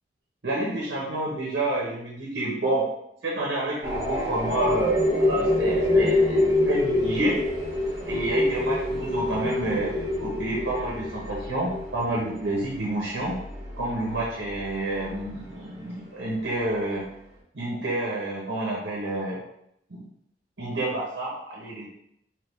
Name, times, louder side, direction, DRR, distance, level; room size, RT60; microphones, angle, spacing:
voice 1, 0.4-2.9 3.2-7.4 8.1-13.3 13.8-17.0 17.5-19.4 19.9-20.0 20.6-21.9, right 1 dB, 70° right, -4 dB, 0.9 m, -29 dB
sound 1, 3.8-15.4, left 2 dB, 20° right, 1.3 m, -26 dB
3.5 x 3.1 x 3.1 m, 0.76 s
head